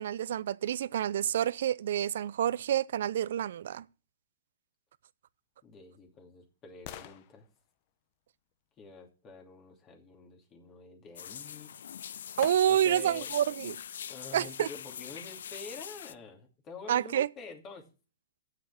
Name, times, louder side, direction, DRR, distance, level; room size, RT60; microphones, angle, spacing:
voice 1, 0.0-3.8 12.4-13.8 14.3-14.7 16.9-17.3, right 10 dB, 65° right, 0.5 m, -28 dB
sound 1, 5.3-9.4 11.5-11.6 12.4-13.1 13.6-13.7, left 12 dB, 45° left, 1.0 m, -51 dB
voice 2, 5.6-7.5 8.8-11.7 12.7-13.3 14.1-17.8, left 4 dB, 30° left, 2.9 m, -48 dB
sound 2, 11.2-16.1, left 8 dB, 75° left, 0.5 m, -43 dB
8.3 x 6.5 x 8.4 m
hypercardioid pair, 130°, 0 cm